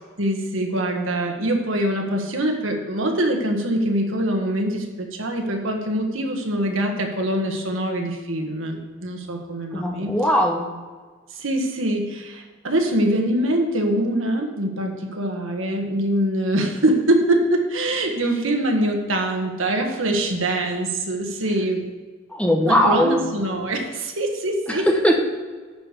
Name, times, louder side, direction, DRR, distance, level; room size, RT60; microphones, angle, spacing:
voice 1, 0.2-10.1 11.3-21.8 22.7-24.9, right 1 dB, 70° right, 3 dB, 1.6 m, -23 dB
voice 2, 9.7-10.6 22.3-23.2 25.0-25.2, equal, 5° left, 2 dB, 1.0 m, -19 dB
11.0 x 5.1 x 6.8 m, 1.4 s
head